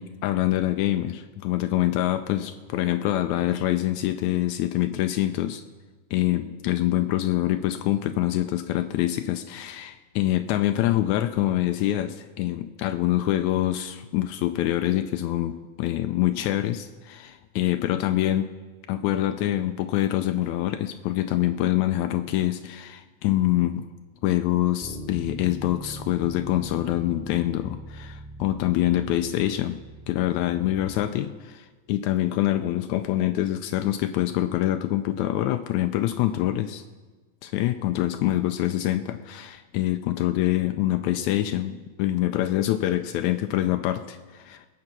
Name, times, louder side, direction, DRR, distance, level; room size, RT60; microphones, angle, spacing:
voice 1, 0.0-5.6 6.1-18.5 18.9-23.9 24.2-29.8 30.1-36.8 37.4-44.7, left 14 dB, 90° left, 8 dB, 1.6 m, -25 dB
Bass guitar, 24.8-31.1, right 1 dB, ahead, 2.0 m, -41 dB
20.5 x 7.7 x 6.0 m, 1.4 s
omnidirectional pair, 3.9 m